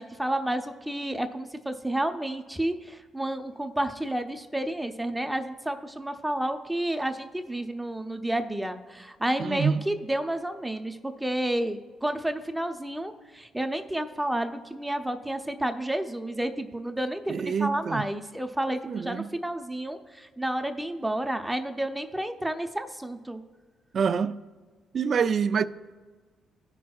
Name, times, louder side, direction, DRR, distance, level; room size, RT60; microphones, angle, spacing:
voice 1, 0.0-23.4, right 1 dB, 5° right, 0.6 m, -30 dB
voice 2, 9.4-9.8 17.3-18.1 18.9-19.3 23.9-24.4 24.9-25.6, right 6 dB, 50° right, 0.4 m, -26 dB
16.0 x 5.9 x 2.3 m
cardioid pair, 90°, 0 cm